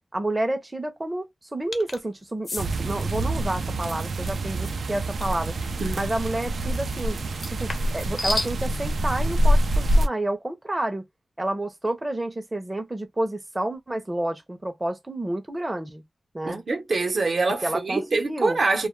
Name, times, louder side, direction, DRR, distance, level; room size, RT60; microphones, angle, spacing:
voice 1, 0.1-5.5 5.9-7.2 7.6-11.0 11.4-16.0 16.3-16.6 17.6-18.6, right 1 dB, 20° right, 0.5 m, -29 dB
sound 1, 1.7-2.0 2.4-2.7 5.2-5.4 7.3-8.5, left 2 dB, 55° left, 0.5 m, -31 dB
Rainy City, 2.6-10.1, right 1 dB, 90° right, 0.3 m, -25 dB
voice 2, 16.4-18.9, right 3 dB, 65° right, 0.7 m, -25 dB
2.2 x 2.1 x 3.0 m
wide cardioid pair, 125°, 0 cm